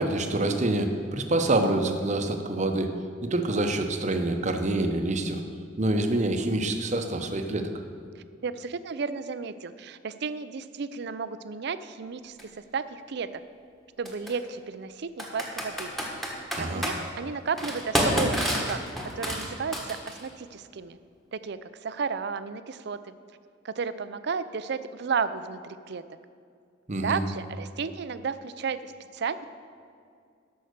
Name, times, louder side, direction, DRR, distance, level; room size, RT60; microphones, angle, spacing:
voice 1, 0.0-2.9 3.2-5.4 5.8-7.7 16.6-16.9 26.9-27.2, right 2 dB, 40° right, 6 dB, 0.8 m, -26 dB
voice 2, 8.4-13.3 14.0-15.9 16.6-18.8 19.2-21.0 21.3-23.1 23.6-26.0 27.0-29.5, right 5 dB, 60° right, 13 dB, 0.5 m, -33 dB
Computer keyboard, 12.4-12.5 14.1-14.3 15.2-17.0 17.6-20.3, equal, ahead, 1.4 m, -28 dB
13.0 x 5.7 x 6.7 m, 2.3 s
head